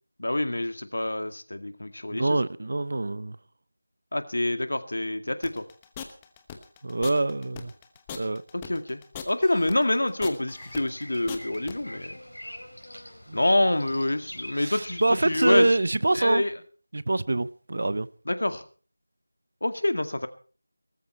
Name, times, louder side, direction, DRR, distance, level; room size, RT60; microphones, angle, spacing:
voice 1, 0.2-2.4 4.1-5.6 8.5-9.0 9.3-12.2 13.3-15.7 16.1-16.5 18.3-18.6 19.6-20.3, left 1 dB, 70° left, 2.1 m, -26 dB
voice 2, 2.1-3.4 6.8-7.7 8.1-8.4 13.3-13.4 14.5-16.4 16.9-18.1, right 2 dB, 50° right, 0.8 m, -25 dB
sound 1, 5.4-11.7, left 8 dB, 10° left, 1.0 m, -40 dB
Bird vocalization bird call bird song, 10.5-15.6, left 1 dB, 90° left, 4.6 m, -42 dB
19.5 x 14.0 x 4.4 m
figure-of-eight pair, 170°, 0 cm